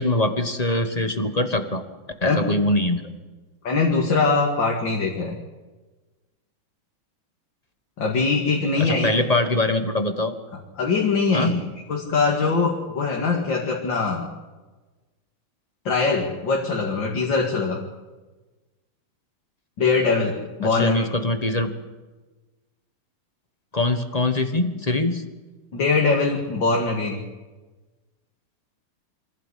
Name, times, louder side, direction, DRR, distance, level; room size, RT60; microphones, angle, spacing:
voice 1, 0.0-1.8 2.2-3.0 8.8-10.3 11.3-11.7 20.6-21.7 23.7-25.2, left 2 dB, 20° left, 7 dB, 1.1 m, -23 dB
voice 2, 3.6-5.4 8.0-9.2 10.8-11.6 11.9-14.3 15.8-17.8 19.8-21.0 25.7-27.2, left 4 dB, 60° left, -1 dB, 3.0 m, -22 dB
25.0 x 15.5 x 8.4 m, 1.2 s
omnidirectional pair, 2.3 m